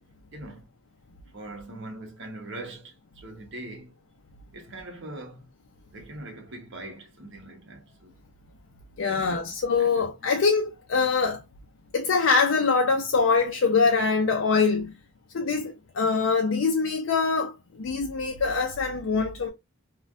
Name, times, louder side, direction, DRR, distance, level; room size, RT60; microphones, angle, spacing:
voice 1, 0.3-0.6 1.3-3.9 4.5-5.5 5.9-8.1 9.0-9.3 9.8-10.3, right 2 dB, 60° right, 1.0 m, -42 dB
voice 2, 9.0-11.4 11.9-14.9 15.3-19.5, left 4 dB, 65° left, 0.4 m, -24 dB
3.2 x 2.2 x 2.4 m
head